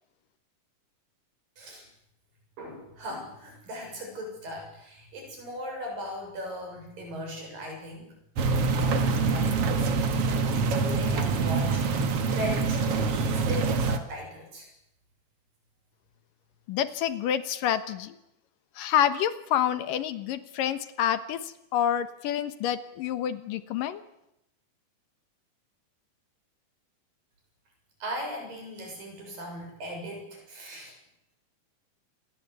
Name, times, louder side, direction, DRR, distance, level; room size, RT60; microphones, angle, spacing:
voice 1, 2.6-8.1 8.8-14.7 28.0-30.9, equal, 75° right, 2 dB, 8.9 m, -38 dB
sound 1, 8.4-14.0, right 4 dB, 50° right, 2.3 m, -25 dB
voice 2, 16.7-18.2 18.8-24.0, left 10 dB, 75° left, 13 dB, 2.8 m, -28 dB
27.0 x 20.5 x 8.3 m, 0.84 s
omnidirectional pair, 4.0 m